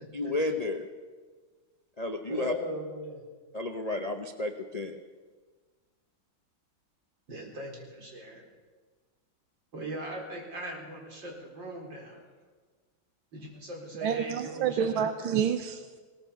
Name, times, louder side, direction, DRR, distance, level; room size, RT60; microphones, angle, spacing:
voice 1, 0.1-0.9 2.0-2.5 3.5-5.0, left 2 dB, 35° left, 5 dB, 0.6 m, -32 dB
voice 2, 2.3-3.2 7.3-8.4 9.7-12.2 13.3-15.1, right 1 dB, 65° right, 0 dB, 5.0 m, -39 dB
voice 3, 14.0-16.0, right 8 dB, 85° right, 9 dB, 1.7 m, -28 dB
20.5 x 18.5 x 7.0 m, 1.5 s
omnidirectional pair, 2.2 m